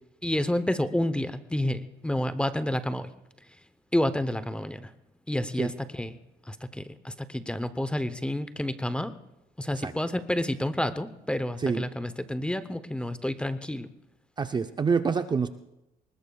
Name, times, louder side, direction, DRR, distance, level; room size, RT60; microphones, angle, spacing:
voice 1, 0.2-3.1 3.9-4.9 5.3-6.2 6.5-9.1 9.6-13.9, left 1 dB, 5° left, 11 dB, 0.8 m, -29 dB
voice 2, 14.4-15.5, right 5 dB, 25° right, 8 dB, 0.6 m, -27 dB
24.0 x 20.5 x 2.3 m, 0.91 s
cardioid pair, 110°, 17 cm